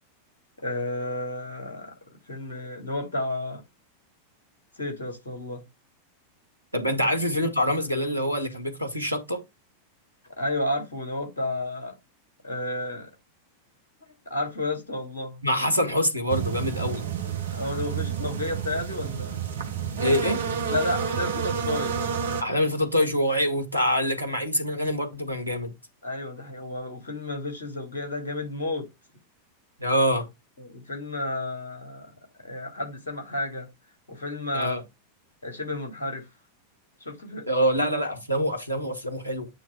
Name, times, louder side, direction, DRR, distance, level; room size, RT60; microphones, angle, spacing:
voice 1, 0.6-1.9 2.3-3.6 4.8-5.6 6.8-6.9 10.4-11.9 12.4-13.1 14.3-15.4 17.5-19.4 20.7-22.2 26.0-28.9 30.6-32.1 32.4-33.7 34.1-34.8 35.4-36.2 37.0-37.4, left 2 dB, 70° left, 2.8 m, -31 dB
voice 2, 6.7-9.4 15.4-17.0 20.0-20.4 22.4-25.7 29.8-30.3 34.5-34.8 37.5-39.5, equal, 90° right, 1.4 m, -25 dB
sound 1, 16.3-22.4, right 7 dB, 65° right, 1.1 m, -29 dB
8.8 x 3.1 x 4.7 m
figure-of-eight pair, 90°, 0 cm